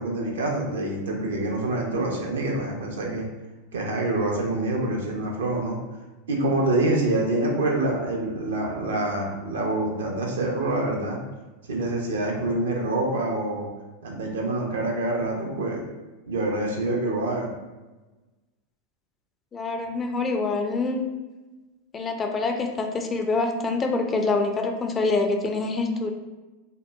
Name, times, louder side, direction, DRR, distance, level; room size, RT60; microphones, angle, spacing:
voice 1, 0.0-3.3 3.7-5.8 6.3-11.2 11.7-13.7 14.0-15.8 16.3-17.5, right 2 dB, 75° right, 0 dB, 0.6 m, -26 dB
voice 2, 19.5-21.0 21.9-26.1, left 3 dB, 25° left, 4 dB, 0.3 m, -25 dB
2.8 x 2.1 x 2.2 m, 1.1 s
hypercardioid pair, 90°, 0 cm